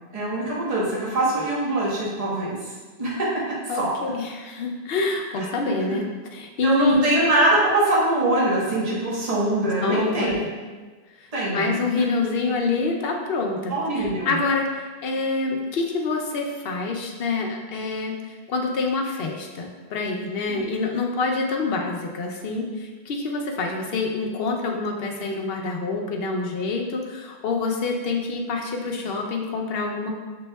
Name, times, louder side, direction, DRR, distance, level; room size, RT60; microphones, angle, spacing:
voice 1, 0.1-2.7 3.0-3.3 3.8-3.9 5.4-5.5 6.6-10.3 11.3-11.8 13.7-14.3 20.5-20.6, right 1 dB, 35° right, -6 dB, 1.1 m, -23 dB
voice 2, 3.7-7.1 9.8-10.5 11.2-11.3 11.5-30.1, left 3 dB, 70° left, 1 dB, 0.8 m, -26 dB
6.1 x 3.5 x 2.2 m, 1.4 s
omnidirectional pair, 1.1 m